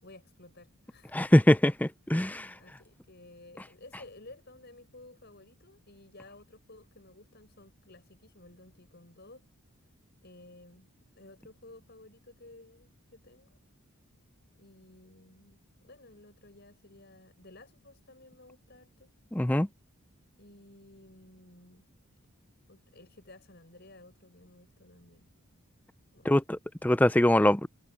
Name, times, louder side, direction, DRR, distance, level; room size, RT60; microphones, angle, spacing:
voice 1, 0.0-1.2 2.2-9.5 10.2-10.9 11.2-13.6 14.6-19.1 20.4-21.9 22.7-25.3 26.1-26.4, left 2 dB, 50° left, 5.8 m, -54 dB
voice 2, 1.1-2.5 19.3-19.7 26.2-27.7, left 1 dB, 5° left, 0.4 m, -23 dB
head